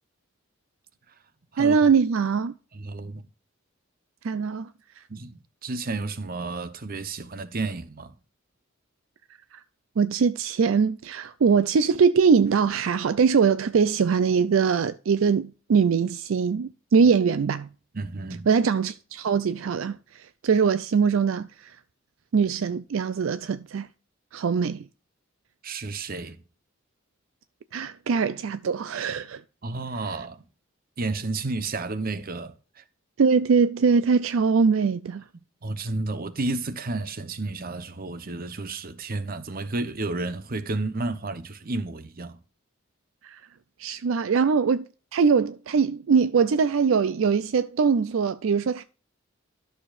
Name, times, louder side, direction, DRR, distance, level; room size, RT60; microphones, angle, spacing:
voice 1, 1.6-2.5 4.2-4.7 10.0-17.7 18.5-21.7 22.3-23.9 24.3-24.8 27.7-29.4 33.2-35.2 43.2-43.4 43.8-44.9 45.1-48.8, right 5 dB, 70° right, 0.4 m, -22 dB
voice 2, 2.7-3.2 5.1-8.1 17.9-18.5 25.6-26.4 29.6-30.4 31.0-32.5 35.6-42.4, right 3 dB, 45° right, 0.8 m, -31 dB
12.5 x 6.6 x 2.5 m
head